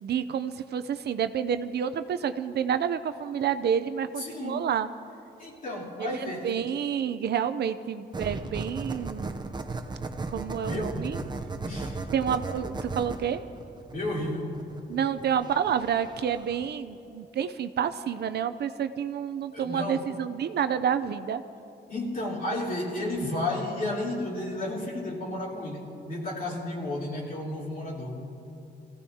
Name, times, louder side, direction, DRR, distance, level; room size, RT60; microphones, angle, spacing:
voice 1, 0.0-4.9 6.0-9.6 10.3-11.2 12.1-13.4 14.9-21.4, right 8 dB, 70° right, 11 dB, 0.6 m, -29 dB
voice 2, 4.2-4.7 5.4-6.7 10.6-11.0 11.6-12.0 13.9-14.6 19.5-20.1 21.9-28.2, left 1 dB, 50° left, -4 dB, 3.6 m, -32 dB
sound 1, 8.1-16.7, right 3 dB, 25° right, 0.7 m, -36 dB
25.5 x 16.0 x 2.8 m, 2.8 s
cardioid pair, 105°, 18 cm